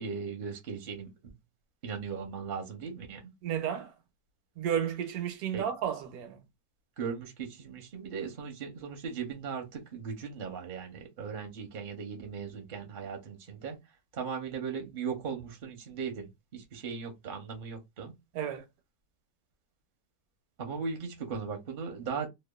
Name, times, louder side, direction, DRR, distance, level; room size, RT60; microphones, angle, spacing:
voice 1, 0.0-1.3 1.8-3.3 5.5-5.6 7.0-13.8 14.1-18.1 20.6-22.3, right 6 dB, 50° right, 0.7 m, -38 dB
voice 2, 3.4-3.9 4.6-6.4 18.3-18.6, right 9 dB, 80° right, 1.1 m, -32 dB
2.9 x 2.2 x 2.2 m
omnidirectional pair, 1.6 m